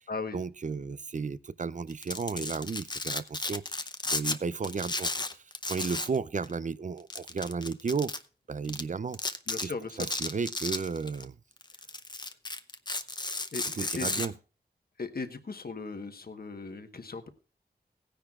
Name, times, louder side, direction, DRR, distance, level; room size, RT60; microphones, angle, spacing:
voice 1, 0.3-5.2 5.7-8.1 8.5-9.2 9.6-9.7 10.0-11.4 13.6-14.3, right 5 dB, 45° right, 0.5 m, -33 dB
Domestic sounds home sounds, 1.9-4.4 4.6-6.2 6.4-6.6 7.1-8.2 8.7-8.8 9.1-9.7 10.0-11.2 11.6-14.3, left 2 dB, 25° left, 0.8 m, -33 dB
voice 2, 9.5-10.1 13.5-14.2 15.0-17.3, left 4 dB, 60° left, 1.3 m, -37 dB
17.5 x 10.0 x 2.4 m
wide cardioid pair, 90°, 18 cm